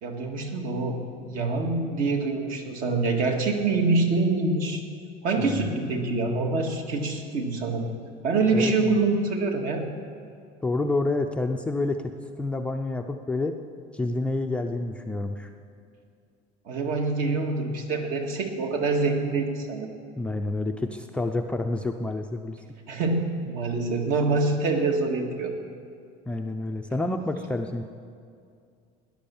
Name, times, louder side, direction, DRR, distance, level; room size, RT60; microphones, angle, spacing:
voice 1, 0.0-4.8 5.2-7.9 8.2-9.9 16.7-19.9 22.9-25.6, right 3 dB, 55° right, 3 dB, 2.0 m, -25 dB
voice 2, 5.4-5.7 8.5-8.9 10.6-12.1 12.4-13.5 13.9-15.5 20.1-22.6 26.3-27.8, left 2 dB, 5° left, 3 dB, 0.5 m, -28 dB
17.5 x 11.0 x 7.1 m, 2.3 s
cardioid pair, 165°, 17 cm